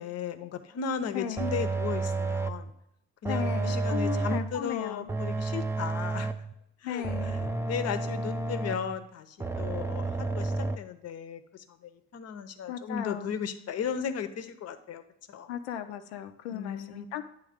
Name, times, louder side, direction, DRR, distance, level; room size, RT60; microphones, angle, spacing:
voice 1, 0.0-2.7 3.2-6.3 6.8-15.0 15.3-15.5 16.5-17.2, left 7 dB, 50° left, 10 dB, 0.8 m, -36 dB
voice 2, 1.1-1.5 3.3-5.1 6.8-7.4 12.7-13.3 15.5-17.2, left 9 dB, 85° left, 9 dB, 0.6 m, -36 dB
sound 1, 1.4-2.7 3.2-4.6 5.1-6.5 7.0-9.0 9.4-10.8, right 3 dB, 10° right, 0.4 m, -31 dB
8.8 x 3.1 x 5.0 m, 0.75 s
hypercardioid pair, 60°, 32 cm